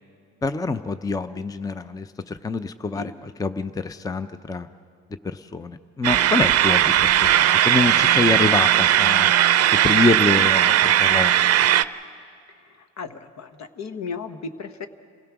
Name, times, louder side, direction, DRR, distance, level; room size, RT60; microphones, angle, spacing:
voice 1, 0.4-4.7 5.2-9.3 9.7-11.4, left 3 dB, 10° left, 11 dB, 0.5 m, -26 dB
sound 1, 6.0-11.8, right 11 dB, 55° right, 0.5 m, -18 dB
voice 2, 12.8-14.9, left 5 dB, 60° left, 9 dB, 1.1 m, -35 dB
27.5 x 16.5 x 6.0 m, 2.4 s
cardioid pair, 90°, 30 cm